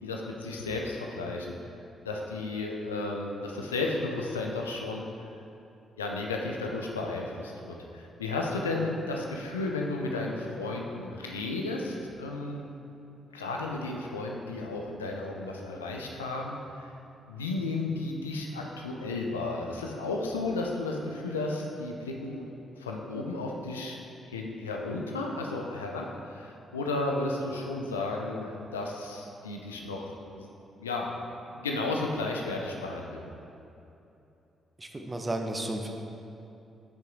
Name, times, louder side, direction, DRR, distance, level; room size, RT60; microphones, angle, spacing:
voice 1, 0.0-1.5 2.0-5.0 6.0-12.6 13.3-16.9 17.3-22.4 22.8-24.0 24.3-30.5 30.8-31.1 31.5-33.3, left 2 dB, 85° left, 0 dB, 0.6 m, -33 dB
voice 2, 34.8-35.9, right 1 dB, 25° right, 3 dB, 1.0 m, -33 dB
8.8 x 5.9 x 3.8 m, 2.9 s
figure-of-eight pair, 40°, 0 cm